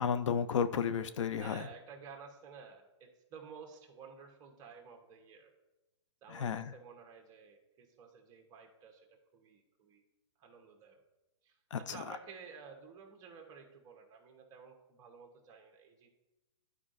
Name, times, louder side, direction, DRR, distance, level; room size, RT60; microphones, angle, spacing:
voice 1, 0.0-1.7 6.3-6.7 11.7-12.2, left 7 dB, 70° left, 12 dB, 0.5 m, -33 dB
voice 2, 1.3-5.5 6.2-10.0 10.4-11.0 11.4-16.1, right 6 dB, 20° right, 2 dB, 1.0 m, -53 dB
11.0 x 4.8 x 2.6 m, 1.0 s
hypercardioid pair, 140°, 16 cm